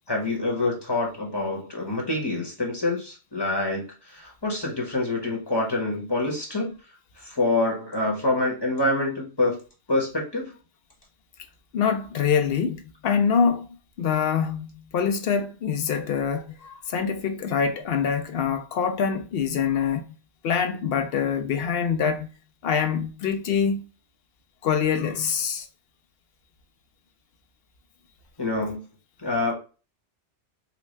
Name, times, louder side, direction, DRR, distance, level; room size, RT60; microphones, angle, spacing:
voice 1, 0.1-6.7 7.2-9.6 9.9-10.5 28.4-28.8 29.2-29.5, left 2 dB, 20° left, 1.0 m, -26 dB
voice 2, 11.7-14.7 14.9-20.0 20.4-22.3 22.6-23.8 24.6-25.7, left 7 dB, 60° left, 0.8 m, -25 dB
4.0 x 2.2 x 3.0 m
omnidirectional pair, 1.2 m